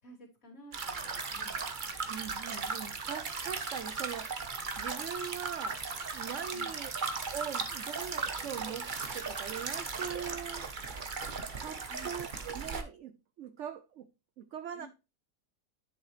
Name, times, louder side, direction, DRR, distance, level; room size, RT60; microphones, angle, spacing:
voice 1, 0.0-1.5 6.5-6.7 11.9-12.1 14.7-14.9, right 1 dB, 50° left, 3.4 m, -52 dB
sound 1, 0.7-12.8, right 4 dB, 35° right, 0.9 m, -37 dB
voice 2, 2.1-4.3 4.8-5.8 6.1-6.9 7.3-10.7 11.5-13.1 13.4-14.1 14.4-14.9, right 8 dB, 65° right, 0.7 m, -41 dB
10.5 x 6.5 x 3.2 m
omnidirectional pair, 1.8 m